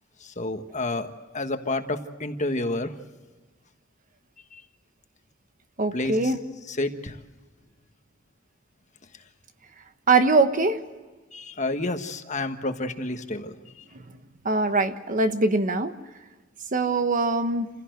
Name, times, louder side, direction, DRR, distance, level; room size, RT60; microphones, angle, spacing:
voice 1, 0.2-2.9 4.5-4.6 5.9-6.2 6.7-7.2 11.3-13.5, left 2 dB, 40° left, 7 dB, 1.4 m, -29 dB
voice 2, 5.8-6.4 10.1-10.8 13.9-14.0 14.4-15.9 16.7-17.7, right 3 dB, 45° right, 9 dB, 1.2 m, -22 dB
28.0 x 16.5 x 7.9 m, 1.3 s
head